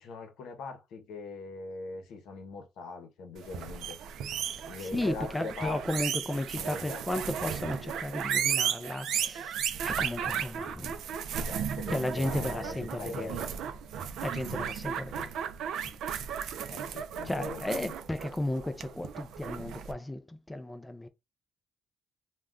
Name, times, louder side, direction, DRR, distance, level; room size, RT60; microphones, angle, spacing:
voice 1, 0.0-4.0 4.6-6.0 6.5-7.0 11.4-13.6 16.7-17.9, left 4 dB, 80° left, 0.7 m, -42 dB
sound 1, 3.4-19.9, right 8 dB, 75° right, 0.4 m, -35 dB
voice 2, 4.5-10.9 11.9-13.5 14.2-15.4 15.8-15.9 17.2-21.1, left 1 dB, 10° left, 0.3 m, -34 dB
2.3 x 2.2 x 3.6 m
cardioid pair, 115°, 0 cm